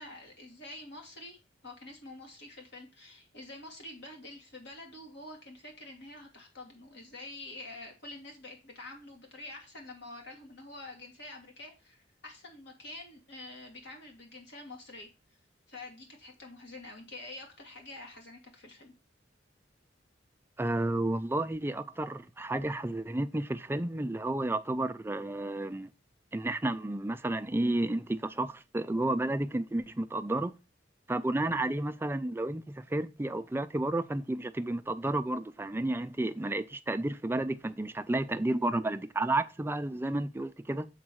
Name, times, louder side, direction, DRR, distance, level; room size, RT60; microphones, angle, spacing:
voice 1, 0.0-1.4 1.6-15.4 15.7-18.9, left 2 dB, 65° left, 2.3 m, -47 dB
voice 2, 20.6-25.9 26.3-30.6 31.1-40.9, right 2 dB, 10° right, 0.4 m, -31 dB
7.4 x 4.0 x 6.2 m
head